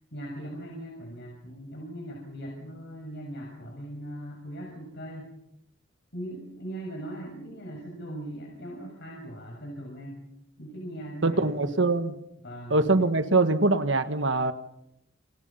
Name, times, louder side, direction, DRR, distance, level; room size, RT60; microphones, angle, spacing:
voice 1, 0.1-5.3 6.1-10.2 10.6-11.9 12.4-13.1, right 1 dB, 60° left, 0 dB, 6.9 m, -40 dB
voice 2, 11.2-12.1 12.7-14.5, right 2 dB, 65° right, 10 dB, 1.7 m, -23 dB
30.0 x 28.0 x 5.7 m, 0.81 s
head